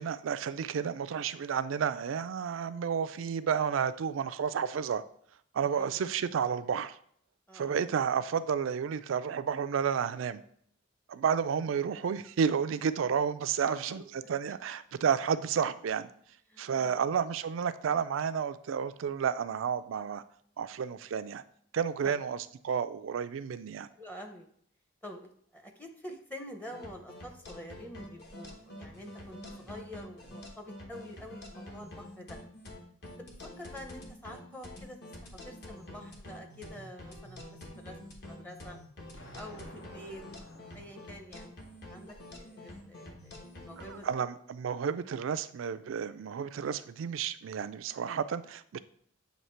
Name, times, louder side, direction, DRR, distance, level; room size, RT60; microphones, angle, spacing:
voice 1, 0.0-5.0 5.5-7.0 7.5-10.4 11.1-14.0 14.3-16.1 16.6-20.2 20.6-21.4 21.7-23.9 44.0-48.8, right 7 dB, 90° right, 13 dB, 0.4 m, -31 dB
voice 2, 13.6-14.0 16.5-17.1 22.0-22.1 23.9-24.5 25.0-32.4 33.2-37.4 37.8-38.0 38.2-38.8 39.3-40.2 40.7-41.6 41.9-44.1, equal, 10° left, 4 dB, 0.6 m, -47 dB
sound 1, 26.7-44.1, left 1 dB, 60° left, 1.2 m, -47 dB
Explosion, 39.1-42.1, left 1 dB, 80° left, 1.0 m, -54 dB
7.9 x 2.8 x 4.3 m, 0.64 s
head